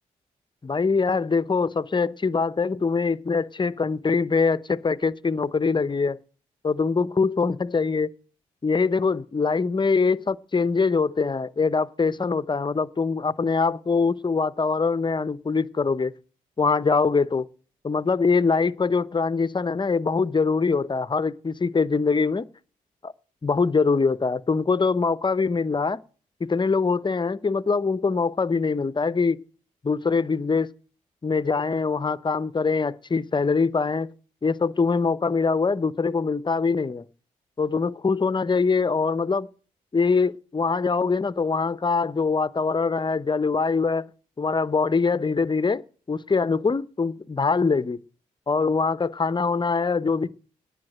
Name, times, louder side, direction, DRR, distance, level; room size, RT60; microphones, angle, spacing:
voice 1, 0.6-6.2 6.6-8.1 8.6-16.1 16.6-17.5 17.8-22.5 23.0-23.1 23.4-26.0 26.4-29.4 29.8-30.7 31.2-34.1 34.4-37.0 37.6-39.5 39.9-44.1 44.4-48.0 48.5-50.3, left 4 dB, 30° left, 0.7 m, -23 dB
10.5 x 8.3 x 7.7 m
supercardioid pair, 45°, 16 cm